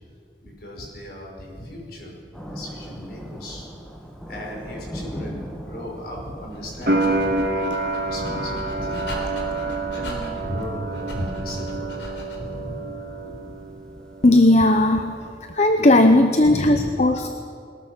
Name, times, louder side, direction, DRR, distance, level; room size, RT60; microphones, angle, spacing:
voice 1, 0.4-2.2 2.4-3.7 4.3-9.1 9.9-11.9 12.3-13.0 16.4-16.9, equal, 55° left, -1 dB, 5.6 m, -35 dB
Thunder, 2.3-15.4, equal, 5° left, 1.8 m, -39 dB
Dog, 6.5-12.6, left 1 dB, 80° left, 4.1 m, -39 dB
sound 1, 6.9-13.7 13.9-14.8, right 2 dB, 50° right, 2.0 m, -28 dB
voice 2, 14.2-15.1 15.5-17.3, left 2 dB, 40° left, 7 dB, 0.8 m, -16 dB
21.5 x 20.5 x 6.4 m, 2.4 s
head